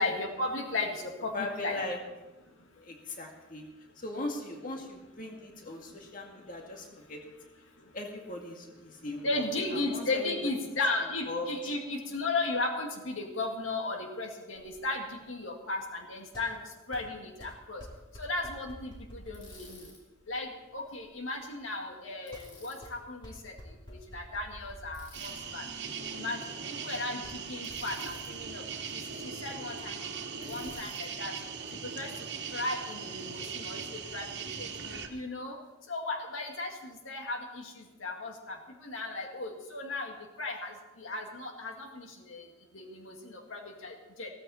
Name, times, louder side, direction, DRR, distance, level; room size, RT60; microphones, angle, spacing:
voice 1, 0.0-1.8 9.2-16.6 16.9-17.8 18.2-19.9 20.3-23.5 24.1-25.6 26.1-26.4 26.8-28.6 29.4-30.1 30.4-31.3 31.8-32.1 32.5-35.6 35.9-37.7 38.0-38.6 38.8-40.1 40.4-42.4 42.7-44.3, left 2 dB, 90° left, 2 dB, 2.1 m, -35 dB
voice 2, 1.3-2.0 2.8-3.7 4.0-7.3 7.9-9.4 9.7-10.7 11.3-11.7 23.9-24.0, left 2 dB, 45° left, 1 dB, 2.1 m, -39 dB
sound 1, 14.5-30.7, equal, 25° left, 2.7 m, -52 dB
Bicycle, 19.3-20.0 22.3-22.9 24.9-25.4 27.6-28.3 30.4-31.1, left 3 dB, 70° left, 4.4 m, -54 dB
sound 2, 25.1-35.1, right 6 dB, 55° right, 1.6 m, -40 dB
16.0 x 14.5 x 4.3 m, 1.1 s
head